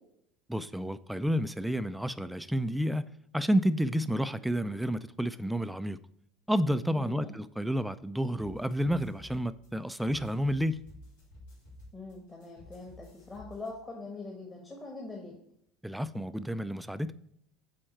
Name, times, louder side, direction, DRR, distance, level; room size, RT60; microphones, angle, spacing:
voice 1, 0.5-6.0 6.5-10.8 15.8-17.1, equal, 5° right, 13 dB, 0.4 m, -30 dB
voice 2, 6.9-7.3 11.9-15.4, left 3 dB, 25° left, 0 dB, 1.6 m, -43 dB
sound 1, 8.4-13.7, left 1 dB, 80° left, 2.8 m, -52 dB
7.7 x 4.3 x 4.4 m, 0.72 s
hypercardioid pair, 75°, 0 cm